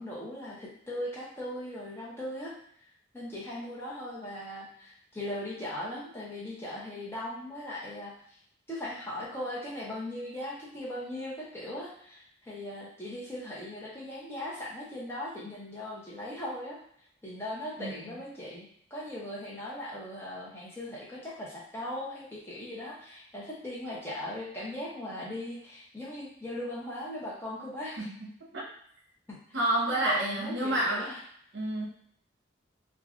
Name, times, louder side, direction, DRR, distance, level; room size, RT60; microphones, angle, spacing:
voice 1, 0.0-2.5 3.1-8.4 8.7-16.8 17.2-28.1 29.3-29.6 29.8-31.2, left 1 dB, 15° left, -6 dB, 0.7 m, -39 dB
voice 2, 28.0-28.6 29.5-31.1 31.5-31.8, right 1 dB, 70° right, -3 dB, 0.7 m, -29 dB
3.0 x 2.3 x 2.4 m, 0.66 s
head